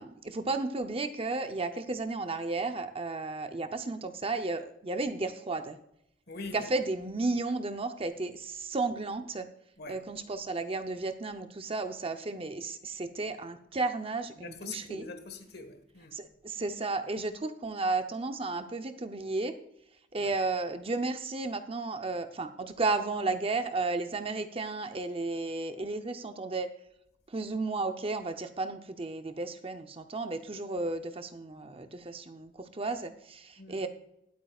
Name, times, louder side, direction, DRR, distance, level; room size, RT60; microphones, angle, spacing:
voice 1, 0.0-5.8 6.5-9.5 9.9-15.0 16.1-19.6 20.1-26.7 27.3-33.9, right 3 dB, 30° right, 0.6 m, -33 dB
voice 2, 6.3-6.7 9.8-10.0 14.4-16.2 20.2-20.3 33.6-33.8, left 3 dB, 55° left, 1.5 m, -43 dB
20.5 x 8.6 x 2.4 m
head